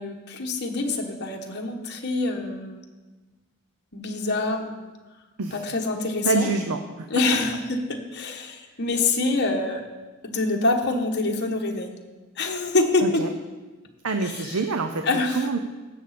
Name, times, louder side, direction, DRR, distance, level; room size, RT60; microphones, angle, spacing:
voice 1, 0.0-2.8 3.9-4.9 5.5-6.5 7.1-7.8 8.1-9.8 10.2-11.9 12.4-13.2 14.2-14.6 15.1-15.5, left 3 dB, 55° left, 2 dB, 1.2 m, -25 dB
voice 2, 6.2-7.6 13.0-13.3 14.0-15.6, right 4 dB, 75° right, 7 dB, 0.7 m, -27 dB
16.0 x 6.8 x 4.2 m, 1.2 s
head